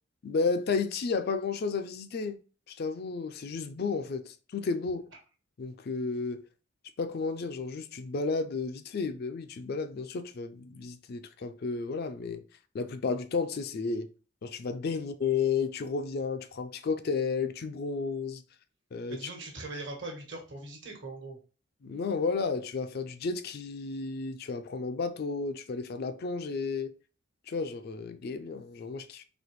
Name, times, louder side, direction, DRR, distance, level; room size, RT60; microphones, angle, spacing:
voice 1, 0.2-2.4 2.7-5.0 5.6-6.4 7.0-12.4 12.7-14.1 14.4-18.4 18.9-19.2 21.8-26.9 27.5-29.2, left 4 dB, 50° left, 0.4 m, -32 dB
voice 2, 19.1-21.4, right 2 dB, 60° right, 1.2 m, -41 dB
4.1 x 2.8 x 3.0 m
head